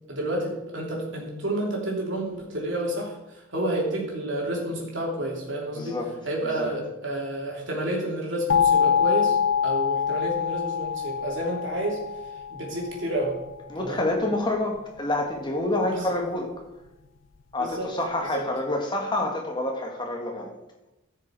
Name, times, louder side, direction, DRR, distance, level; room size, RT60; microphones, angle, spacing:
voice 1, 0.1-5.9 6.2-9.4 9.6-12.0 12.5-13.3 13.8-14.0 15.9-16.0 17.6-17.9 18.2-18.4, right 1 dB, 65° right, -2 dB, 3.2 m, -30 dB
voice 2, 5.7-6.1 6.4-6.6 13.7-16.5 17.5-20.5, left 2 dB, 20° left, 1 dB, 1.7 m, -27 dB
sound 1, 8.5-13.2, left 8 dB, 70° left, 0.5 m, -25 dB
14.5 x 6.7 x 4.6 m, 0.97 s
head